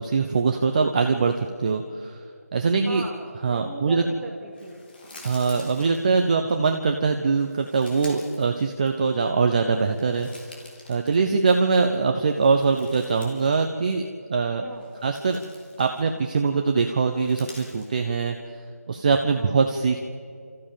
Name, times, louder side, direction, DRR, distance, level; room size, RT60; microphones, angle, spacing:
voice 1, 0.0-2.2 2.5-3.0 3.4-4.0 5.2-10.5 10.9-14.6 15.0-15.4 15.8-18.4 18.9-20.0, right 4 dB, 30° right, 5 dB, 0.8 m, -23 dB
voice 2, 2.8-4.8 14.6-14.9 19.3-19.6, right 2 dB, 10° right, -6 dB, 3.1 m, -39 dB
sound 1, 4.5-6.6 7.3-9.3 9.7-11.8 12.2-13.6 13.9-14.1 14.7-16.4 17.1-18.0, left 2 dB, 35° left, 3.3 m, -48 dB
29.5 x 14.5 x 7.2 m, 2.3 s
figure-of-eight pair, 160°, 9 cm